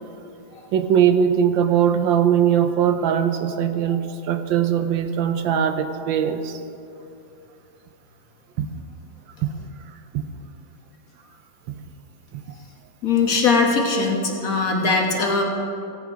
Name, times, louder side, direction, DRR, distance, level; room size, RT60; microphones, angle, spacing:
voice 1, 0.7-6.6 8.6-8.7 9.4-9.5 10.1-10.2 12.3-12.4, right 8 dB, 90° right, 8 dB, 1.5 m, -20 dB
voice 2, 13.0-15.4, left 4 dB, 50° left, 1 dB, 1.6 m, -20 dB
16.5 x 8.7 x 4.9 m, 2.7 s
omnidirectional pair, 2.0 m